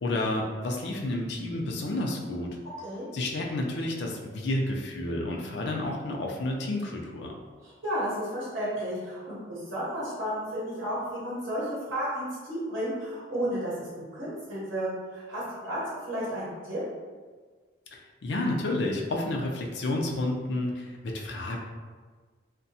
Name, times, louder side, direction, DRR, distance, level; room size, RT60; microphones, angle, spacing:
voice 1, 0.0-2.5 3.1-7.3 17.9-21.6, left 1 dB, 65° left, 0 dB, 0.4 m, -30 dB
voice 2, 7.6-16.8, equal, 75° right, -8 dB, 0.8 m, -33 dB
2.7 x 2.2 x 2.6 m, 1.5 s
head